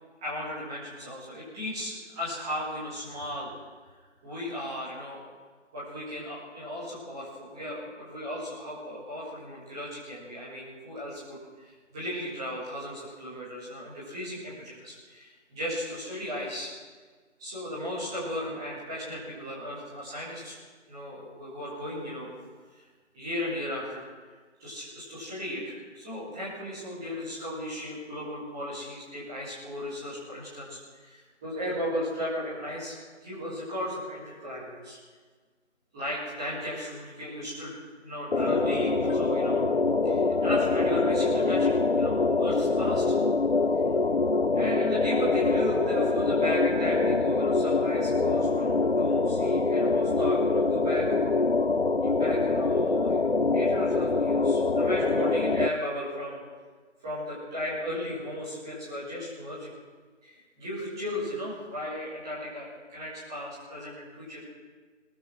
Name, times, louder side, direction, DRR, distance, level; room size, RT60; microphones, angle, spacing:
voice 1, 0.2-3.5 4.2-5.2 5.7-16.7 17.4-20.6 20.9-22.3 22.7-22.9 23.1-24.3 24.6-33.0 33.2-35.0 35.9-39.6 40.0-43.2 44.5-51.1 52.0-53.3 53.5-56.4 57.0-59.7 60.2-64.5, left 1 dB, 5° right, -10 dB, 1.8 m, -35 dB
sound 1, 38.3-55.7, left 3 dB, 55° left, 1.0 m, -24 dB
22.0 x 20.5 x 6.1 m, 1.5 s
figure-of-eight pair, 170°, 37 cm